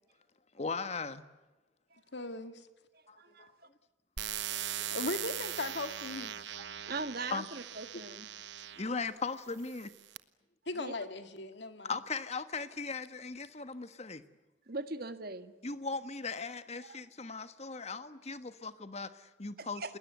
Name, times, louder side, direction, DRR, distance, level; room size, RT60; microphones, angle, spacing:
voice 1, 0.5-1.2 3.1-3.5 4.8-4.9 7.3-7.5 8.8-9.9 11.8-14.2 15.6-20.0, left 4 dB, 35° left, 11 dB, 1.3 m, -38 dB
voice 2, 2.1-2.7 4.9-6.3 10.7-11.9, left 2 dB, 65° left, 9 dB, 2.0 m, -38 dB
voice 3, 3.2-3.7 4.2-4.6 6.9-8.3 10.7-10.9 14.7-15.5 16.8-17.0 19.6-19.9, right 3 dB, 55° right, 10 dB, 1.6 m, -41 dB
sound 1, 4.2-8.9 9.6-10.2, right 11 dB, 70° right, 1.1 m, -40 dB
29.5 x 20.5 x 8.1 m, 1.1 s
head